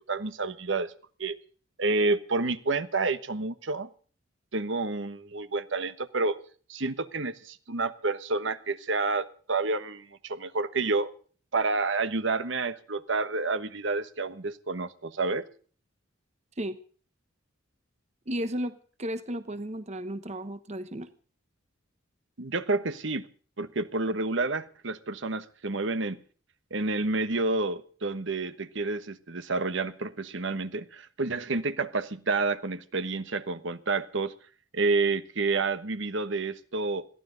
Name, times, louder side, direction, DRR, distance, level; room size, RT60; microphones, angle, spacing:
voice 1, 0.1-0.9 1.2-1.4 1.8-3.9 4.5-6.4 6.7-11.1 11.5-15.5 22.4-23.3 23.6-26.2 26.7-34.3 34.7-37.1, right 3 dB, 65° right, 12 dB, 1.2 m, -29 dB
voice 2, 18.3-21.1, equal, 35° right, 11 dB, 1.0 m, -34 dB
21.5 x 15.5 x 3.9 m, 0.43 s
head